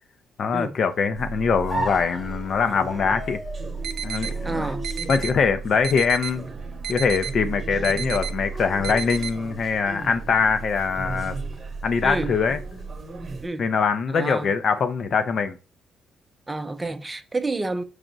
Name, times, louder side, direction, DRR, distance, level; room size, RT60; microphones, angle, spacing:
voice 1, 0.4-3.4 4.0-4.7 5.1-6.4 6.9-11.4 11.8-12.6 13.6-15.6, left 5 dB, 55° left, 0.5 m, -23 dB
sound 1, 1.1-13.5, right 4 dB, 40° right, 0.8 m, -34 dB
sound 2, 1.7-9.6, right 1 dB, 5° right, 0.8 m, -37 dB
sound 3, 3.8-4.3 4.8-5.3 5.8-6.3 6.8-7.3 7.8-8.3 8.8-9.3, right 8 dB, 80° right, 0.4 m, -32 dB
voice 2, 4.4-4.9 12.0-12.4 13.4-13.7 14.1-14.5 16.5-17.8, right 2 dB, 20° right, 0.5 m, -29 dB
4.8 x 2.1 x 3.9 m
cardioid pair, 90°, 0 cm